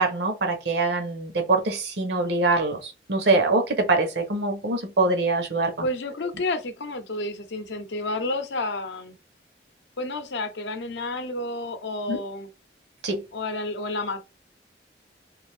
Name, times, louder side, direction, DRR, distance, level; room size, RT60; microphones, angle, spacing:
voice 1, 0.0-5.9 12.1-12.2 13.0-13.2, right 3 dB, 70° right, 0.8 m, -24 dB
voice 2, 5.8-9.2 10.0-12.5 13.3-14.2, left 2 dB, 80° left, 0.6 m, -30 dB
2.5 x 2.3 x 3.3 m
head